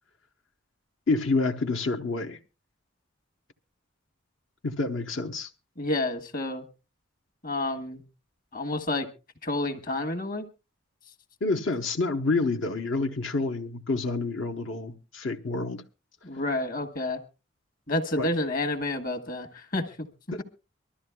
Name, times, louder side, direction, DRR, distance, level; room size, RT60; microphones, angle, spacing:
voice 1, 1.1-2.4 4.6-5.5 11.4-15.8 18.2-18.3 20.3-20.4, left 3 dB, 60° left, 0.9 m, -28 dB
voice 2, 5.8-6.6 7.4-8.0 8.5-9.1 9.4-10.5 16.2-17.2 17.9-20.1, left 2 dB, 45° left, 1.4 m, -29 dB
24.0 x 12.5 x 2.2 m
head